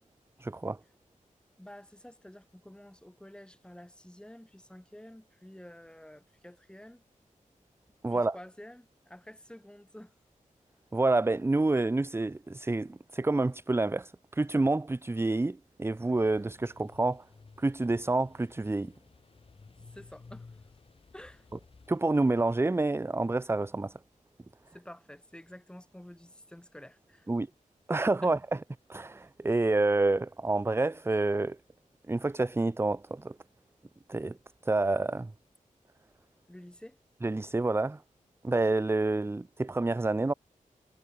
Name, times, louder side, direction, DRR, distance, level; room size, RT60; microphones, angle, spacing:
voice 1, 0.4-0.8 8.0-8.3 10.9-17.2 17.6-18.9 21.9-23.9 27.3-27.5 27.9-28.4 28.9-31.6 32.1-33.3 34.1-34.4 34.6-35.3 37.2-38.0 38.4-40.3, right 2 dB, 20° right, 0.8 m, -28 dB
voice 2, 1.6-7.0 8.1-10.1 19.9-20.7 21.1-21.5 24.7-27.3 28.2-28.3 36.5-37.0, left 1 dB, 5° left, 4.2 m, -50 dB
sound 1, 16.2-22.0, left 4 dB, 45° left, 5.0 m, -55 dB
wide cardioid pair, 130°, 14 cm